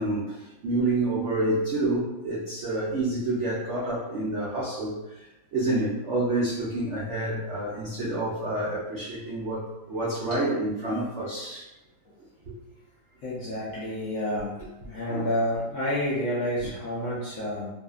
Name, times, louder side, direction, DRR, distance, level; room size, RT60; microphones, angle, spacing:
voice 1, 0.0-5.3 5.5-11.7 15.1-15.3, right 2 dB, 75° right, -6 dB, 0.6 m, -28 dB
voice 2, 13.2-14.5 14.9-17.7, left 1 dB, 70° left, -7 dB, 0.7 m, -29 dB
2.6 x 2.4 x 2.3 m, 0.97 s
omnidirectional pair, 1.8 m